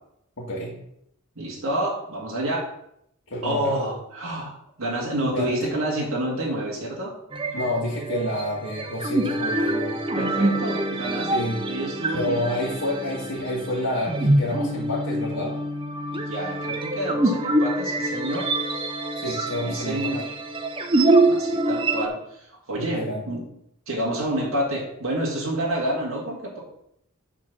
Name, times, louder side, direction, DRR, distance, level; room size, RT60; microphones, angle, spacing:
voice 1, 0.4-0.8 3.3-3.8 5.3-5.7 7.5-10.0 11.3-11.6 12.1-15.6 19.2-20.1 22.7-23.2, left 1 dB, 60° left, -7 dB, 1.8 m, -29 dB
voice 2, 1.4-2.7 3.4-4.5 4.8-7.1 9.6-9.7 10.1-11.3 11.6-12.5 16.1-18.5 19.3-20.3 21.3-23.4 23.9-26.6, right 1 dB, 65° right, -4 dB, 2.1 m, -28 dB
sound 1, 7.3-22.1, right 2 dB, 25° right, 0.6 m, -25 dB
9.1 x 4.0 x 6.0 m, 0.74 s
head